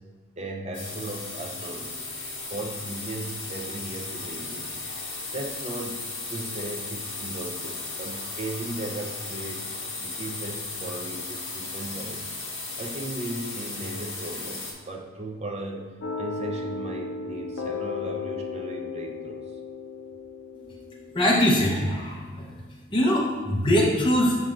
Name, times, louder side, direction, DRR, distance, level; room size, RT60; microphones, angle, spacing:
voice 1, 0.4-2.1 2.5-4.7 5.3-9.7 10.0-12.3 12.8-15.9 16.2-19.5, right 1 dB, 30° right, 1 dB, 0.6 m, -36 dB
sound 1, 0.7-14.7, left 3 dB, 60° left, 1.5 m, -36 dB
sound 2, 16.0-21.5, left 4 dB, 90° left, 0.6 m, -35 dB
voice 2, 21.1-22.5 22.9-24.4, left 1 dB, 25° left, -4 dB, 0.8 m, -22 dB
7.4 x 5.4 x 2.5 m, 1.5 s
head